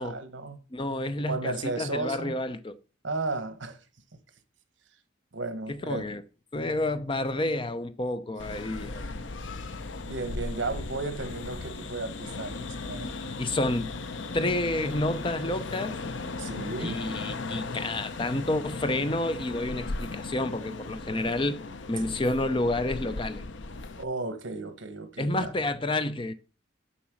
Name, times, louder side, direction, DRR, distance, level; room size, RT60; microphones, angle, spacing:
voice 1, 0.0-0.6 1.2-2.3 3.0-3.8 5.3-6.1 9.6-9.7 10.0-13.1 16.4-17.0 24.0-25.5, right 3 dB, 70° right, 1.3 m, -34 dB
voice 2, 0.7-2.8 5.7-6.2 6.5-9.0 13.4-14.0 14.3-16.0 16.8-21.6 21.9-23.4 25.2-26.3, left 2 dB, 25° left, 0.6 m, -29 dB
sound 1, 8.4-24.0, left 3 dB, 70° left, 0.7 m, -37 dB
7.1 x 6.1 x 6.2 m
head